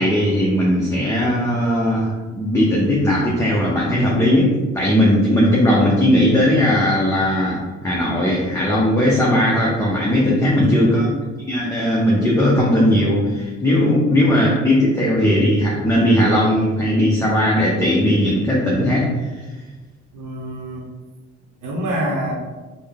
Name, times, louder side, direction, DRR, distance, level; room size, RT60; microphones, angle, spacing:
voice 1, 0.0-4.5 4.7-11.1 11.5-19.4, equal, 10° left, -5 dB, 0.7 m, -18 dB
voice 2, 10.6-11.2 14.0-14.4 20.1-20.9 21.6-22.3, right 1 dB, 75° right, -2 dB, 0.7 m, -26 dB
3.6 x 2.1 x 3.5 m, 1.3 s
cardioid pair, 90°, 30 cm